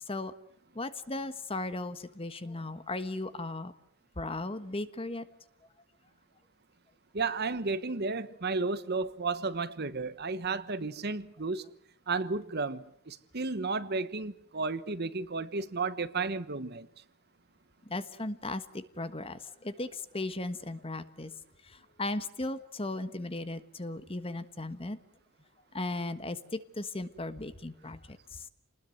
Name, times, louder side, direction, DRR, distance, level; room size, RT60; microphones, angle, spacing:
voice 1, 0.7-3.7 4.2-5.3 17.8-21.4 21.6-25.0 25.7-28.5, left 2 dB, 25° left, 1.4 m, -37 dB
voice 2, 7.1-11.7 12.1-16.9, right 3 dB, 50° right, 1.2 m, -33 dB
28.5 x 20.0 x 7.9 m
head